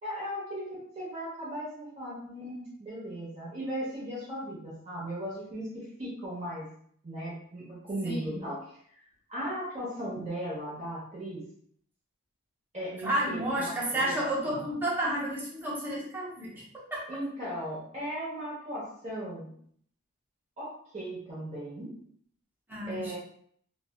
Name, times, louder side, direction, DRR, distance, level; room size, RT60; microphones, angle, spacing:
voice 1, 0.0-6.7 7.0-8.6 9.3-11.4 12.7-14.1 14.5-14.6 17.1-19.5 20.6-21.9 22.8-23.2, equal, 30° right, -7 dB, 0.9 m, -37 dB
voice 2, 8.0-8.4 13.0-17.0 22.7-23.2, right 1 dB, 10° right, -7 dB, 0.7 m, -31 dB
3.2 x 2.2 x 2.3 m, 0.63 s
head